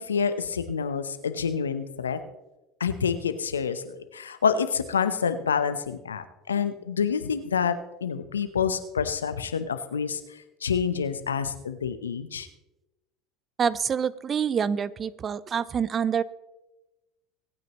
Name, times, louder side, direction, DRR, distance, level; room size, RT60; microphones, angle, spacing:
voice 1, 0.0-2.2 2.8-7.8 8.0-10.2 10.6-12.5, left 6 dB, 90° left, 11 dB, 0.9 m, -27 dB
voice 2, 13.6-16.2, right 7 dB, 35° right, 19 dB, 0.6 m, -26 dB
24.5 x 9.1 x 3.0 m, 1.0 s
hypercardioid pair, 75°, 0 cm